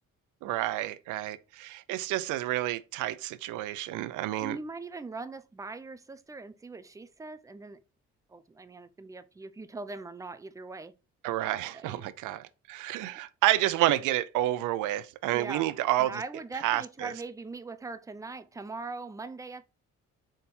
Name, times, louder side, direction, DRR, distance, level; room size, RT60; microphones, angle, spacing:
voice 1, 0.4-4.6 11.2-16.2 16.6-17.1, right 14 dB, 90° right, 0.5 m, -29 dB
voice 2, 4.4-7.8 8.3-10.9 11.7-12.0 15.3-19.6, right 3 dB, 10° right, 0.4 m, -41 dB
4.1 x 3.7 x 2.7 m
cardioid pair, 90°, 30 cm